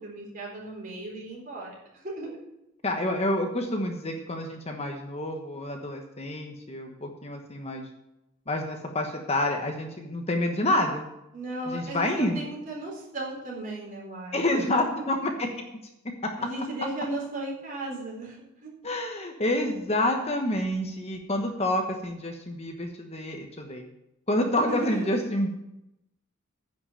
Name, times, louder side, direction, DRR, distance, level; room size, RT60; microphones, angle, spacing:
voice 1, 0.0-2.4 11.3-15.1 16.4-18.7 24.5-25.2, right 2 dB, 40° right, -3 dB, 4.3 m, -36 dB
voice 2, 2.8-7.8 8.5-11.1 11.7-12.5 14.3-15.7 16.0-16.3 18.8-23.8 24.3-25.5, left 1 dB, 30° left, 3 dB, 1.2 m, -28 dB
10.5 x 6.0 x 8.6 m, 0.86 s
head